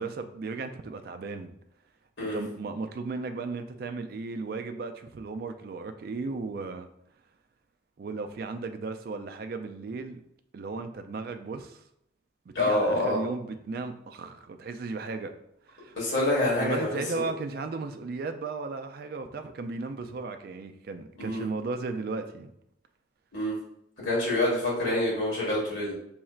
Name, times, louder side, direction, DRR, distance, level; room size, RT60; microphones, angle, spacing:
voice 1, 0.0-1.5 2.2-6.9 8.0-10.2 10.5-11.8 12.5-15.3 15.6-16.0 16.6-22.5, right 4 dB, 50° right, 8 dB, 0.3 m, -35 dB
voice 2, 12.5-13.2 15.9-17.3 21.2-21.4 23.3-23.6 24.0-25.9, left 1 dB, 80° left, -5 dB, 1.5 m, -27 dB
4.3 x 3.1 x 2.4 m, 0.76 s
head